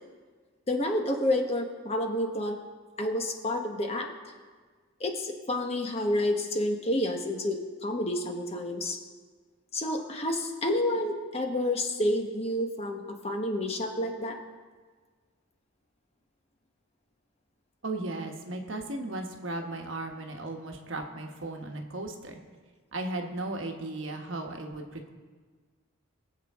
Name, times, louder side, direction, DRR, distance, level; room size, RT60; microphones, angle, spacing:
voice 1, 0.7-2.6 3.0-4.1 5.0-9.0 9.7-14.4, left 1 dB, 30° left, 3 dB, 1.1 m, -29 dB
voice 2, 17.8-22.4 22.9-25.1, right 2 dB, 60° right, 3 dB, 1.3 m, -36 dB
22.5 x 7.9 x 3.6 m, 1.5 s
head